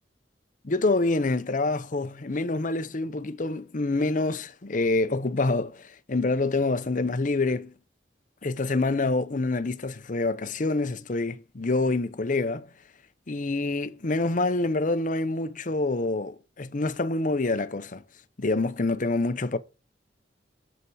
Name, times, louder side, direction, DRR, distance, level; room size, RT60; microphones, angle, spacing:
voice 1, 0.6-7.7 8.4-12.7 13.3-18.0 18.4-19.6, left 2 dB, 45° left, 0.7 m, -26 dB
7.5 x 5.5 x 4.7 m
head